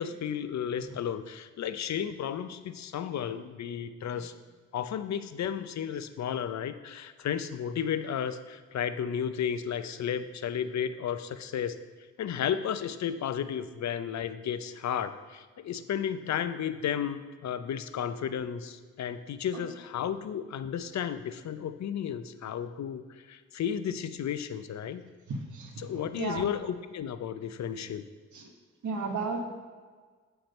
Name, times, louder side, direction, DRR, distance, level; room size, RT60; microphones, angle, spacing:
voice 1, 0.0-4.3 4.7-11.8 12.2-25.1 25.8-28.0, left 8 dB, 65° left, 11 dB, 0.6 m, -33 dB
voice 2, 25.3-25.7 26.1-26.5 28.3-28.4 28.8-29.4, right 4 dB, 75° right, 2 dB, 1.4 m, -33 dB
7.6 x 4.6 x 5.2 m, 1.5 s
supercardioid pair, 45°, 30 cm